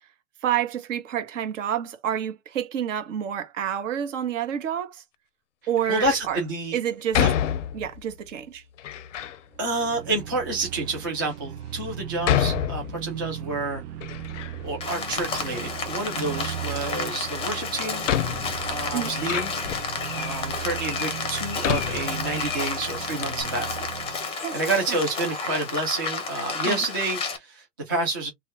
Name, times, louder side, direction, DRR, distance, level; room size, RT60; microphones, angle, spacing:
voice 1, 0.4-5.0 5.7-6.4 6.7-7.2 7.7-8.6 18.9-19.1 24.4-24.5 26.6-26.8, right 9 dB, 50° right, 1.0 m, -28 dB
Door, 5.8-6.2 7.1-8.1 8.8-9.4 10.2-10.3 11.0-11.1 12.2-13.4 13.7-14.8 15.1-15.9 17.3-17.4 18.0-20.0 20.7-20.8 21.6-22.7 22.9-23.0 23.2-23.4, left 10 dB, 50° left, 0.5 m, -28 dB
voice 2, 5.9-6.8 7.2-7.3 9.6-14.1 14.6-18.0 18.7-19.5 20.1-28.3, right 2 dB, 15° right, 0.3 m, -29 dB
sound 1, 9.5-24.3, right 12 dB, 65° right, 0.5 m, -37 dB
Rain, 14.8-27.4, left 4 dB, 10° left, 0.7 m, -31 dB
3.2 x 2.3 x 3.4 m
hypercardioid pair, 120°, 49 cm